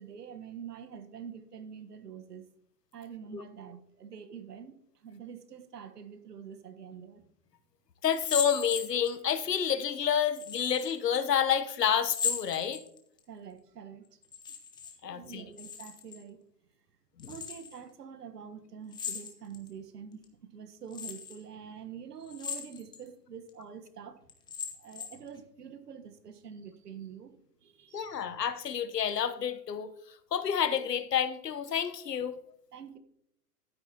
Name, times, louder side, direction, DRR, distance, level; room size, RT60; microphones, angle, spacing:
voice 1, 0.0-2.4 2.9-7.2 13.3-14.2 15.0-16.4 17.3-24.2 24.7-27.3 27.6-28.2 32.7-33.0, right 7 dB, 75° right, 10 dB, 1.4 m, -46 dB
voice 2, 8.0-12.8 15.0-15.4 17.2-17.3 27.9-32.4, left 8 dB, 85° left, 11 dB, 1.1 m, -29 dB
sound 1, 8.1-9.4 10.4-11.0 12.0-13.2 14.2-15.0 15.2-16.2 17.2-17.8 18.9-19.7 20.2-20.3 20.9-21.4 22.2-23.0 23.5-23.6 24.3-25.3, left 6 dB, 10° left, 0.8 m, -37 dB
12.0 x 9.5 x 2.9 m, 0.73 s
hypercardioid pair, 130°, 47 cm